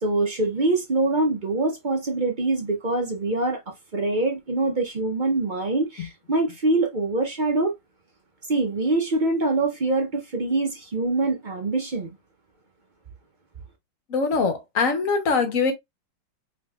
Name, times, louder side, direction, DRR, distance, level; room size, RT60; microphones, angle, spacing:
voice 1, 0.0-7.7 8.5-12.1, right 2 dB, 50° right, 0.5 m, -24 dB
voice 2, 14.1-15.7, left 4 dB, 55° left, 1.2 m, -22 dB
4.9 x 3.1 x 2.3 m
omnidirectional pair, 1.9 m